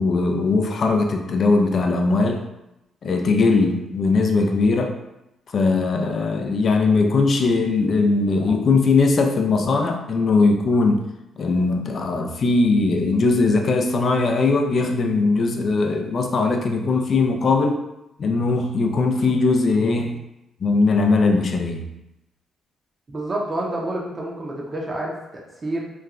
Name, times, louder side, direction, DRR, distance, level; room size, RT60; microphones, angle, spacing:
voice 1, 0.0-2.4 3.0-5.0 5.5-11.0 11.4-17.8 18.2-20.2 20.6-21.9, left 3 dB, 50° left, 4 dB, 0.3 m, -20 dB
voice 2, 23.1-25.9, right 1 dB, 30° right, -2 dB, 0.5 m, -28 dB
2.9 x 2.3 x 2.4 m, 0.91 s
cardioid pair, 90°, 0 cm